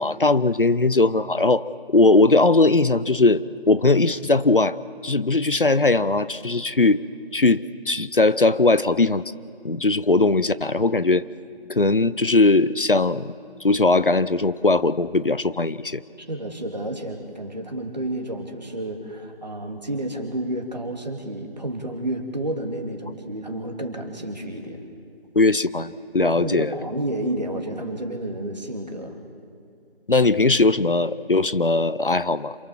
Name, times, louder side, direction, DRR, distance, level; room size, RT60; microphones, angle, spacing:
voice 1, 0.0-1.6 1.9-4.8 5.0-7.0 7.3-9.2 9.6-11.3 11.7-13.3 13.6-16.0 25.3-26.7 30.1-32.6, left 3 dB, 60° left, 16 dB, 0.7 m, -19 dB
voice 2, 16.2-24.8 26.2-29.2, right 1 dB, 45° right, 2 dB, 2.8 m, -30 dB
27.5 x 22.5 x 7.4 m, 2.4 s
figure-of-eight pair, 175°, 31 cm